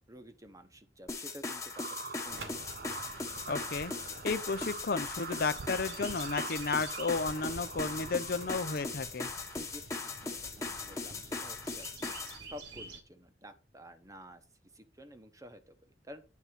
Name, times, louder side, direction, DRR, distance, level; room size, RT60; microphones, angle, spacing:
voice 1, 0.1-2.5 9.5-14.5 14.7-16.2, equal, 20° right, 1.0 m, -51 dB
sound 1, 1.1-12.4, left 3 dB, 15° left, 1.2 m, -39 dB
sound 2, 1.7-9.7, right 5 dB, 55° right, 0.6 m, -45 dB
sound 3, 2.3-13.0, right 2 dB, 70° right, 2.0 m, -49 dB
voice 2, 3.5-3.9 4.2-9.3, left 4 dB, 55° left, 0.7 m, -33 dB
9.5 x 4.1 x 5.9 m
head